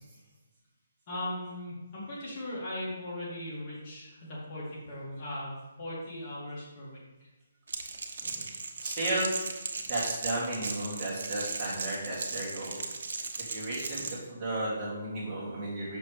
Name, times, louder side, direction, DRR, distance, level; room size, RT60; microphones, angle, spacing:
voice 1, 1.1-7.0, left 1 dB, 30° left, -6 dB, 2.3 m, -38 dB
Crackle, 7.7-14.2, right 4 dB, 65° right, 1.0 m, -37 dB
voice 2, 8.8-9.3 9.9-12.8 13.5-16.0, right 1 dB, 15° right, -9 dB, 2.5 m, -34 dB
7.3 x 6.2 x 3.3 m, 1.2 s
hypercardioid pair, 160°, 0 cm